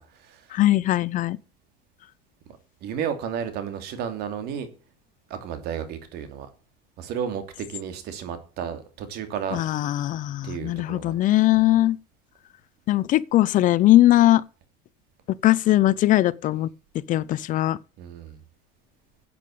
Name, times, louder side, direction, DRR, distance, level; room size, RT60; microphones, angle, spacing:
voice 1, 0.0-0.5 2.5-4.7 5.3-6.5 7.0-9.6 10.4-11.1 11.5-11.6 18.0-18.4, right 8 dB, 65° right, 2.8 m, -33 dB
voice 2, 0.5-1.4 9.5-12.0 12.9-14.4 15.3-16.7 17.1-17.8, left 15 dB, 45° left, 0.6 m, -20 dB
9.0 x 8.6 x 8.6 m
cardioid pair, 120°, 18 cm